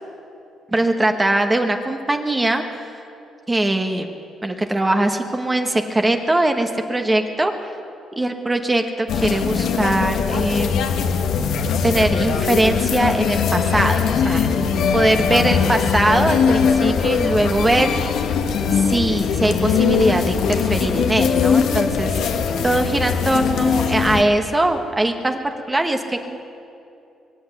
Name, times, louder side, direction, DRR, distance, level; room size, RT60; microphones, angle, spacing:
voice 1, 0.7-2.9 3.5-4.1 4.4-7.5 8.2-10.9 11.8-14.5 14.9-18.0 18.7-22.4 22.6-25.4 25.7-26.4, right 1 dB, 20° right, 5 dB, 1.3 m, -21 dB
sound 1, 9.1-24.2, left 6 dB, 80° left, 1.1 m, -20 dB
22.5 x 8.0 x 8.1 m, 2.6 s
cardioid pair, 90°, 0 cm